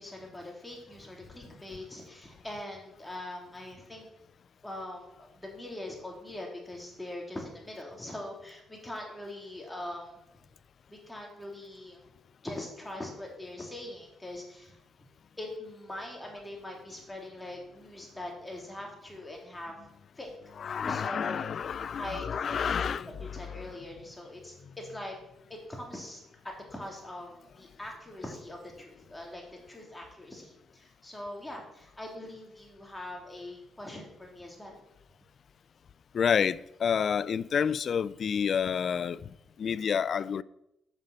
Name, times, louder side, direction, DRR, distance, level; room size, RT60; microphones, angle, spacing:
voice 1, 0.0-4.1 4.6-10.4 10.9-12.0 12.4-14.8 15.4-19.7 20.2-20.3 20.6-21.5 22.0-25.1 25.5-29.4 29.7-34.8, left 1 dB, 10° left, 2.7 m, -42 dB
voice 2, 20.5-23.7 36.1-39.3 39.6-40.4, left 7 dB, 55° left, 0.3 m, -29 dB
7.4 x 5.3 x 6.7 m
cardioid pair, 90°, 0 cm